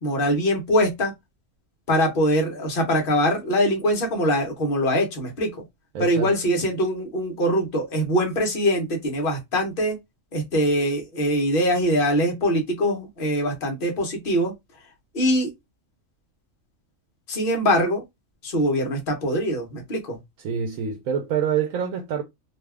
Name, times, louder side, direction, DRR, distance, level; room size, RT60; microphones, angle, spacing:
voice 1, 0.0-1.1 1.9-5.6 6.0-10.0 10.3-14.5 15.1-15.5 17.3-18.0 18.4-20.2, equal, 45° left, 1.1 m, -23 dB
voice 2, 5.9-6.3 20.4-22.2, right 7 dB, 80° right, 1.0 m, -26 dB
2.8 x 2.3 x 3.3 m
omnidirectional pair, 1.4 m